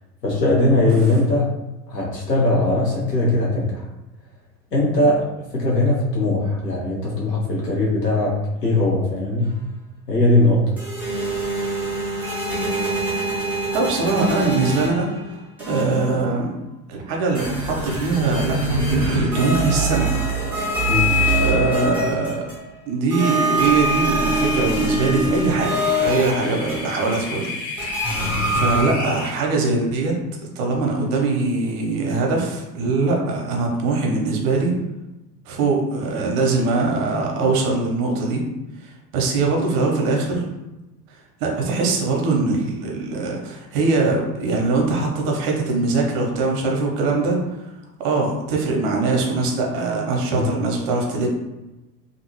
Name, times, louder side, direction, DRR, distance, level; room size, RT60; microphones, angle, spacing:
voice 1, 0.2-1.5 1.9-3.8 4.7-9.5 10.1-10.6 20.9-21.1, left 2 dB, 80° left, -4 dB, 1.1 m, -20 dB
sound 1, 10.8-15.2 15.6-16.2 17.3-22.7 23.1-27.2 27.8-28.8, right 1 dB, 5° right, 0.7 m, -24 dB
voice 2, 13.7-15.1 15.7-16.5 16.9-20.1 21.4-22.5 22.9-27.5 27.8-27.9 28.5-30.2 30.6-34.7 35.5-38.4 38.8-40.5 41.4-47.4 48.0-51.3, right 3 dB, 40° right, 0 dB, 0.8 m, -22 dB
sound 2, 25.1-29.4, left 2 dB, 25° left, 0.4 m, -33 dB
2.6 x 2.6 x 2.9 m, 1.0 s
figure-of-eight pair, 80°, 48 cm